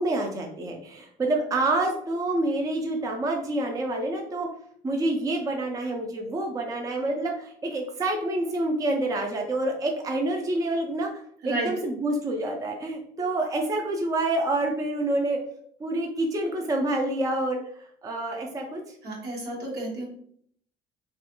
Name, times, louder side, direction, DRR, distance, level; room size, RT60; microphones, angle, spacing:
voice 1, 0.0-4.5 4.8-11.1 11.5-15.4 15.8-17.6 18.0-18.8, right 2 dB, 20° right, 2 dB, 0.4 m, -27 dB
voice 2, 19.0-20.1, right 2 dB, 70° right, -2 dB, 1.1 m, -31 dB
2.4 x 2.3 x 2.8 m, 0.63 s
cardioid pair, 110°, 17 cm